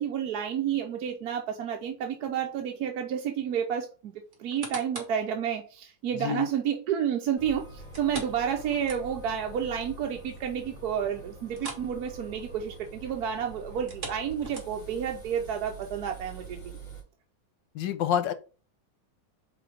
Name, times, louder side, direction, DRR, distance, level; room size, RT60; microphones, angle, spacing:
voice 1, 0.0-4.1 4.4-16.8, right 8 dB, 65° right, 1.2 m, -30 dB
sound 1, 4.3-5.2 5.7-5.8 7.9-9.4 9.7-9.8 10.3-10.4 11.5-11.9 12.2-12.4 13.7-15.0 15.6-15.7, right 3 dB, 40° right, 1.8 m, -41 dB
sound 2, 7.4-17.0, right 3 dB, 25° left, 2.6 m, -45 dB
voice 2, 17.7-18.3, left 10 dB, 85° left, 1.4 m, -27 dB
4.9 x 4.1 x 5.1 m
omnidirectional pair, 1.9 m